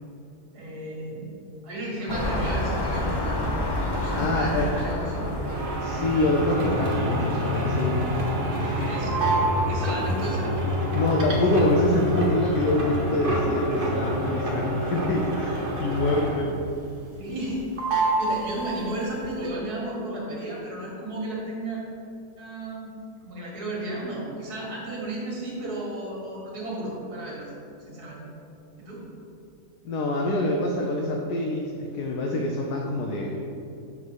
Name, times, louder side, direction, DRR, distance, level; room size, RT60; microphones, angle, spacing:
voice 1, 0.5-1.3 1.6-3.4 3.9-5.6 8.9-9.2 9.7-10.5 17.2-17.6 18.2-21.8 22.4-22.9 23.2-27.5 27.9-28.2 28.8-29.1, right 1 dB, 80° right, -4 dB, 2.3 m, -33 dB
sound 1, 2.1-7.1 7.7-7.8, left 1 dB, 25° left, 0.6 m, -29 dB
voice 2, 4.2-4.6 5.8-8.0 8.6-8.8 10.9-16.6 29.8-33.4, left 1 dB, 85° left, 0 dB, 1.2 m, -25 dB
sound 2, 5.1-16.6 16.9-17.5 17.8-19.1, equal, 40° right, 1.1 m, -27 dB
7.1 x 3.8 x 6.2 m, 2.7 s
omnidirectional pair, 1.6 m